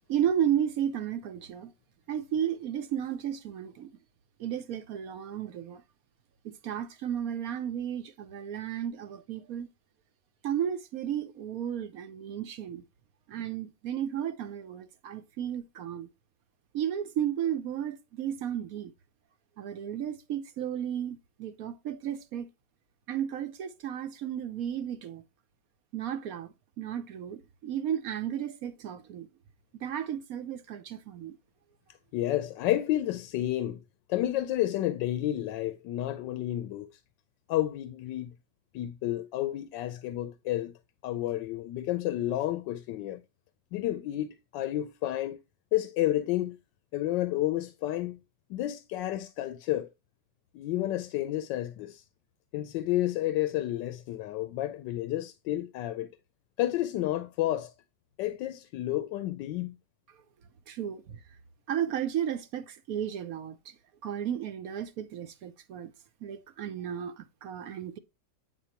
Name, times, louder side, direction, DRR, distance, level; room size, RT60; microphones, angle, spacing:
voice 1, 0.1-1.7 2.1-3.9 4.4-5.8 6.4-9.7 10.4-12.8 13.3-16.1 16.7-18.9 19.6-22.5 23.1-25.2 25.9-26.5 26.8-29.3 29.8-31.4 60.7-61.2 61.7-63.6 64.0-65.9 66.2-68.0, right 9 dB, 65° right, 1.0 m, -33 dB
voice 2, 32.1-33.8 34.1-36.9 37.5-38.3 38.7-40.7 41.0-43.2 43.7-45.4 45.7-46.6 46.9-48.2 48.5-49.9 50.5-52.0 52.5-56.1 56.6-57.7 58.2-59.8, left 14 dB, 90° left, 1.3 m, -30 dB
8.9 x 4.5 x 2.8 m
omnidirectional pair, 1.9 m